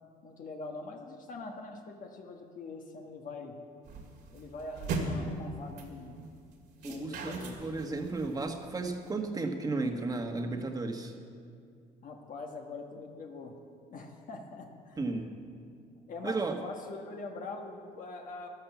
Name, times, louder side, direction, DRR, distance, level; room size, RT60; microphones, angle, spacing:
voice 1, 0.2-3.6 4.3-6.2 6.8-7.7 12.0-13.5 13.9-15.0 16.1-18.5, left 3 dB, 50° left, 2 dB, 1.5 m, -43 dB
sound 1, 3.8-9.1, right 3 dB, 75° right, 2.3 m, -39 dB
voice 2, 6.8-11.1 15.0-15.3 16.2-16.6, right 3 dB, 20° right, 4 dB, 1.5 m, -34 dB
12.5 x 11.5 x 7.2 m, 2.3 s
cardioid pair, 110°, 17 cm